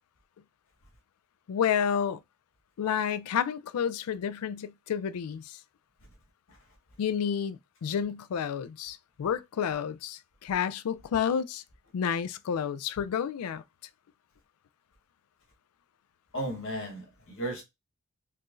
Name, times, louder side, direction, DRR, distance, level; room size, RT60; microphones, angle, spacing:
voice 1, 1.5-2.2 2.8-5.6 7.0-11.6 11.9-13.6, left 8 dB, 80° left, 0.4 m, -30 dB
voice 2, 16.3-17.6, right 1 dB, 65° left, 1.5 m, -35 dB
4.5 x 3.0 x 2.5 m
head